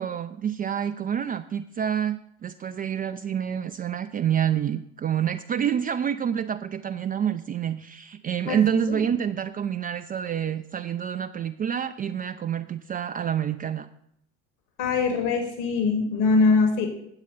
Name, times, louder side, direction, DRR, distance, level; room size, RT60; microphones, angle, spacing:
voice 1, 0.0-13.9, right 9 dB, 25° right, 8 dB, 0.5 m, -28 dB
voice 2, 8.5-9.0 14.8-16.9, left 4 dB, 55° left, 5 dB, 2.3 m, -22 dB
9.0 x 8.1 x 5.5 m, 0.73 s
figure-of-eight pair, 60°, 36 cm